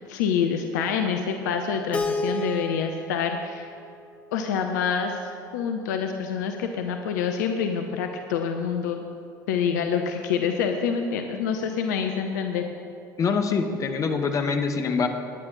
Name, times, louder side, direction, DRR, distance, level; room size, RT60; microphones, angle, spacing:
voice 1, 0.1-3.7 4.3-9.0 9.5-12.6, left 6 dB, 60° left, 5 dB, 0.8 m, -27 dB
Keyboard (musical), 1.9-4.9, left 1 dB, 10° left, 1.1 m, -32 dB
voice 2, 13.2-15.1, left 5 dB, 30° left, 6 dB, 1.2 m, -24 dB
18.5 x 9.7 x 4.0 m, 2.4 s
figure-of-eight pair, 70°, 11 cm